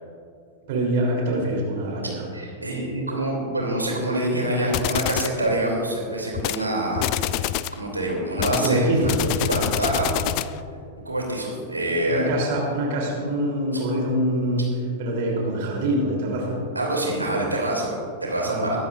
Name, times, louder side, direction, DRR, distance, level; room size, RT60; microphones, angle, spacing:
voice 1, 0.7-2.3 8.5-9.2 12.1-14.6 15.0-16.6 18.4-18.8, right 1 dB, 50° right, -1 dB, 3.4 m, -24 dB
voice 2, 2.3-7.5 7.7-9.1 9.4-10.4 11.0-12.3 13.7-13.8 16.7-18.8, right 1 dB, 85° right, -1 dB, 3.0 m, -26 dB
sound 1, 4.7-5.4 6.3-6.6 7.0-7.8 8.4-10.6, left 14 dB, 45° left, 0.3 m, -26 dB
22.0 x 12.0 x 2.6 m, 2.4 s
figure-of-eight pair, 90°, 0 cm